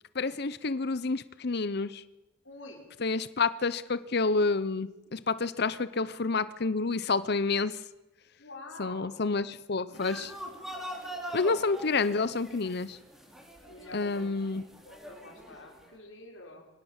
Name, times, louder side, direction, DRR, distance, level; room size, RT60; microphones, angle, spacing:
voice 1, 0.1-2.0 3.0-7.8 8.8-10.3 11.3-13.0 13.9-14.6, left 4 dB, 60° left, 15 dB, 0.8 m, -29 dB
voice 2, 2.4-2.9 8.4-9.1 13.7-14.3 14.6-16.7, left 2 dB, 85° left, 1 dB, 5.2 m, -47 dB
sound 1, 9.9-15.9, right 1 dB, ahead, 4.1 m, -43 dB
23.5 x 18.5 x 7.4 m, 1.0 s
head